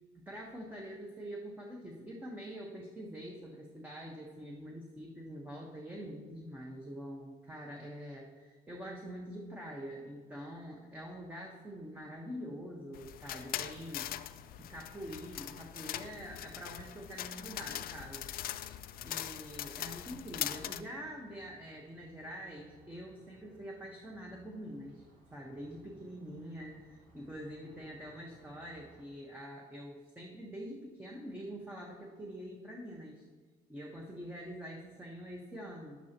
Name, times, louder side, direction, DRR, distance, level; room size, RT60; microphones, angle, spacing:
voice 1, 0.3-14.1 14.6-18.7 19.0-25.0 25.3-33.2 33.7-36.1, equal, 10° right, -2 dB, 1.3 m, -45 dB
sound 1, 12.9-20.8, left 12 dB, 60° left, 0.5 m, -41 dB
sound 2, 17.8-29.0, right 1 dB, 50° right, 2.6 m, -64 dB
11.5 x 11.0 x 3.0 m, 1.4 s
cardioid pair, 110°, 17 cm